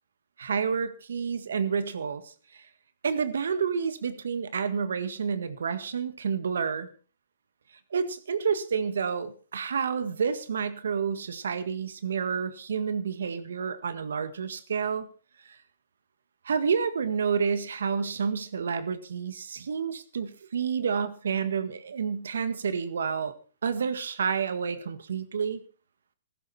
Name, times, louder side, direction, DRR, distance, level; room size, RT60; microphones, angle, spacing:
voice 1, 0.4-2.6 3.0-6.9 7.9-15.1 15.5-15.6 16.5-23.3 23.6-25.6, right 6 dB, 85° right, 12 dB, 1.7 m, -29 dB
15.5 x 13.0 x 4.3 m, 0.37 s
hypercardioid pair, 140°, 0 cm